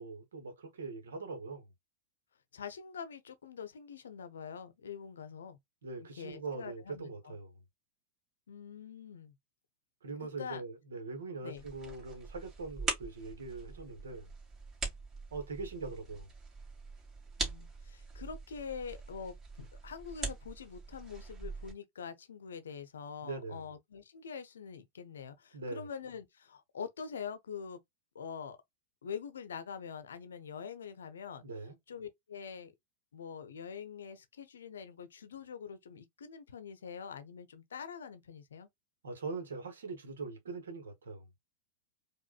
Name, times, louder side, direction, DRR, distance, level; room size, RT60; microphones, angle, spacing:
voice 1, 0.0-1.6 5.8-7.6 10.0-14.3 15.3-16.3 23.2-23.6 25.5-25.9 31.4-31.8 39.0-41.3, right 3 dB, 65° right, 1.2 m, -42 dB
voice 2, 2.5-5.6 6.0-7.4 8.5-9.4 10.2-10.6 11.4-11.6 17.4-27.8 28.1-28.6 29.0-31.4 31.9-32.7 33.1-38.7, left 6 dB, 65° left, 0.7 m, -45 dB
sound 1, 11.6-21.7, right 3 dB, 25° right, 2.3 m, -42 dB
4.7 x 2.5 x 2.4 m
figure-of-eight pair, 90°, 0 cm